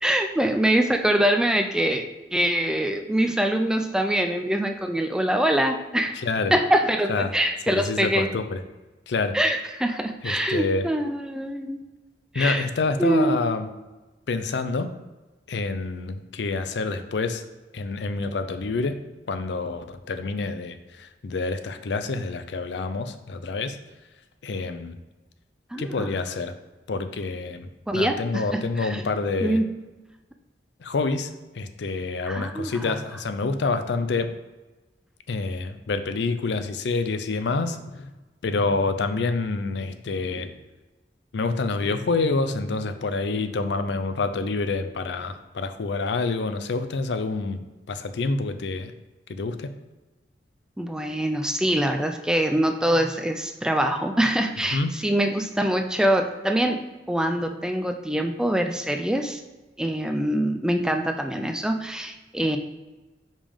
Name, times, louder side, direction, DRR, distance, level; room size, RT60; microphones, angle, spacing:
voice 1, 0.0-2.1 2.3-6.2 6.5-8.3 9.3-11.8 12.3-12.6 13.0-13.4 25.7-26.1 27.9-29.0 29.4-29.6 32.3-33.0 50.8-56.8 57.1-59.4 59.8-62.6, right 1 dB, 5° right, 5 dB, 0.3 m, -24 dB
voice 2, 6.2-6.5 7.1-7.3 7.7-8.6 9.1-9.4 10.2-10.9 12.3-13.7 14.3-14.9 15.5-17.4 17.7-18.9 19.3-23.8 24.4-25.0 25.8-26.5 26.9-29.6 30.8-34.3 35.3-38.1 38.4-40.6 41.3-47.6 47.9-48.9 49.3-49.7 54.7-54.9, left 3 dB, 70° left, 9 dB, 0.5 m, -27 dB
5.2 x 5.2 x 3.4 m, 1.2 s
head